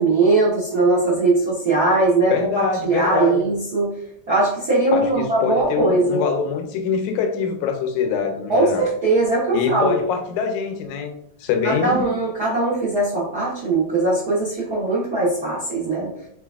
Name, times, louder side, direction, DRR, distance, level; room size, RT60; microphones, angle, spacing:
voice 1, 0.0-3.9 4.3-6.2 8.5-10.0 11.6-16.1, right 2 dB, 65° right, -7 dB, 0.9 m, -20 dB
voice 2, 2.3-3.4 4.9-8.9 9.5-11.1 11.4-12.0, left 6 dB, 90° left, 5 dB, 2.1 m, -24 dB
4.5 x 3.9 x 2.3 m, 0.72 s
omnidirectional pair, 3.3 m